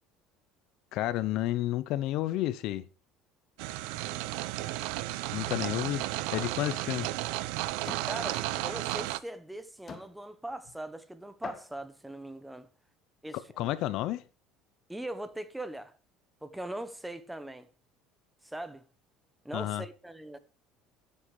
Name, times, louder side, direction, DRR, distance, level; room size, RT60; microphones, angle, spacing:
voice 1, 0.9-2.9 5.3-6.0 6.3-7.1 13.6-14.2 19.5-19.8, left 14 dB, 60° left, 1.0 m, -31 dB
sound 1, 3.6-9.2, right 17 dB, 80° right, 0.8 m, -33 dB
sound 2, 6.3-6.6 7.0-7.2 7.9-8.1 9.0-9.1 9.9-10.1 10.9-11.0 11.4-11.9, left 6 dB, 30° left, 1.7 m, -44 dB
voice 2, 8.0-12.7 13.2-13.7 14.9-15.9 16.4-17.7 18.4-18.8 19.4-20.4, right 1 dB, 5° right, 1.2 m, -40 dB
14.0 x 8.4 x 4.9 m
cardioid pair, 145°, 0 cm